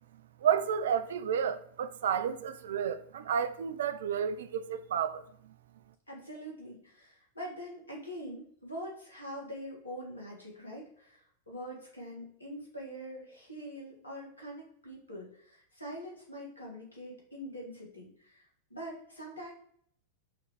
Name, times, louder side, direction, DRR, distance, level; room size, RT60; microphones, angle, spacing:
voice 1, 0.4-5.5, right 8 dB, 60° right, 0.3 m, -31 dB
voice 2, 6.1-11.2 11.5-19.5, equal, 80° left, 1.5 m, -44 dB
4.9 x 3.1 x 3.0 m
figure-of-eight pair, 90°, 0 cm